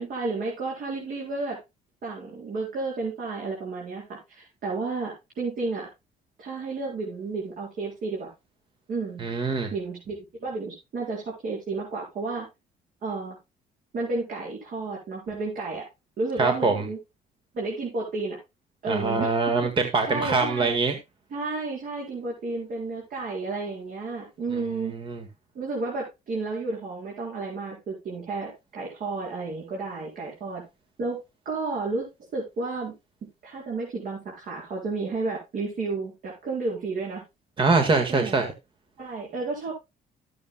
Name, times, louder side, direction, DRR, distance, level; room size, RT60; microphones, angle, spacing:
voice 1, 0.0-1.6 2.0-5.9 6.4-8.3 8.9-9.3 9.7-10.1 10.4-12.5 13.0-13.4 13.9-15.9 16.2-17.0 17.5-18.4 18.8-19.3 19.8-20.8 21.3-24.9 25.5-30.6 31.0-31.2 31.4-32.1 32.3-32.9 33.4-37.2 38.1-38.5 39.0-39.7, right 3 dB, 60° right, -4 dB, 4.4 m, -32 dB
voice 2, 9.2-9.7 16.4-16.8 18.9-20.9 24.9-25.2 37.6-38.5, right 3 dB, 30° right, 6 dB, 1.5 m, -23 dB
13.0 x 8.5 x 2.3 m, 0.23 s
cardioid pair, 110°, 17 cm